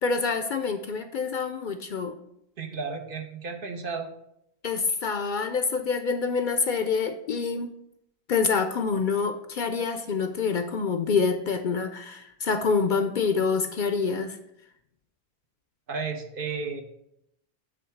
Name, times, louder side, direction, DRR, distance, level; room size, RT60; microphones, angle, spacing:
voice 1, 0.0-2.2 4.6-7.7 8.3-14.4, left 5 dB, 55° left, 8 dB, 0.6 m, -26 dB
voice 2, 2.6-4.1 15.9-16.8, right 5 dB, 60° right, 5 dB, 1.0 m, -33 dB
7.7 x 3.4 x 5.7 m, 0.78 s
omnidirectional pair, 1.1 m